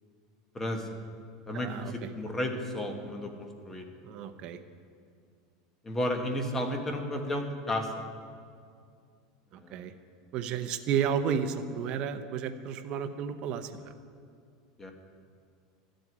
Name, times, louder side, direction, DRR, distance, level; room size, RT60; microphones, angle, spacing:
voice 1, 0.5-0.9 1.5-3.8 5.8-8.0 9.5-9.9 14.8-14.9, left 1 dB, 15° left, 4 dB, 1.3 m, -33 dB
voice 2, 1.5-1.9 4.0-4.6 9.5-9.9 10.3-13.9, right 7 dB, 40° right, 7 dB, 0.8 m, -32 dB
13.0 x 7.8 x 9.7 m, 2.3 s
supercardioid pair, 155°, 3 cm